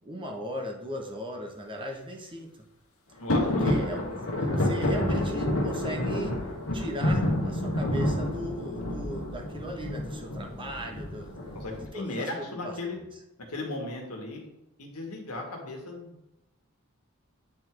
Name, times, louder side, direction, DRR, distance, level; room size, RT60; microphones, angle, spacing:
voice 1, 0.0-2.5 3.4-6.4 6.7-11.4 11.9-13.1, equal, 25° right, 1 dB, 1.1 m, -38 dB
voice 2, 3.2-4.0 11.5-13.0 13.5-14.4 14.8-16.3, left 2 dB, 90° left, 1 dB, 1.8 m, -36 dB
sound 1, 3.3-11.9, left 1 dB, 65° left, 1.4 m, -29 dB
8.9 x 3.7 x 4.6 m, 0.92 s
head